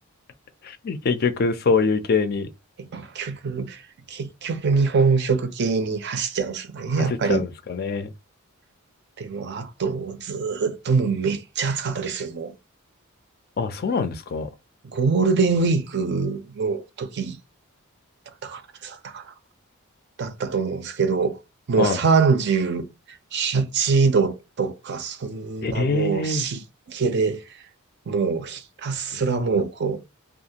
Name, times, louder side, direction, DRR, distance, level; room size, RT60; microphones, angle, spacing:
voice 1, 0.6-2.5 7.0-8.1 13.6-14.5 21.8-22.0 25.6-26.5 29.1-29.4, left 4 dB, 45° left, 0.4 m, -24 dB
voice 2, 2.9-3.8 4.1-7.4 9.2-12.5 14.9-17.4 18.4-19.2 20.2-21.4 21.7-22.9 23.3-27.4 28.1-30.0, right 4 dB, 50° right, 0.5 m, -24 dB
2.5 x 2.3 x 2.8 m
head